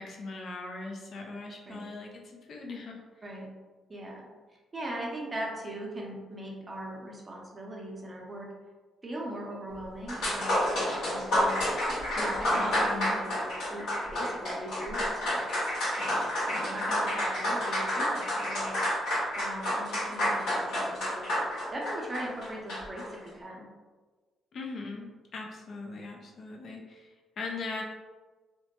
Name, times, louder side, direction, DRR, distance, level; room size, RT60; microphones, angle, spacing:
voice 1, 0.0-3.0 12.6-13.2 16.5-16.8 24.5-27.8, left 3 dB, 55° left, 1 dB, 0.5 m, -40 dB
voice 2, 3.9-4.3 4.7-8.5 9.0-11.6 12.2-15.6 16.0-18.7 19.4-21.3 21.7-23.7, right 1 dB, 25° right, -2 dB, 0.6 m, -39 dB
sound 1, 9.8-9.9 10.1-23.1, left 1 dB, 80° left, 1.5 m, -29 dB
2.9 x 2.1 x 2.9 m, 1.3 s
cardioid pair, 90°, 0 cm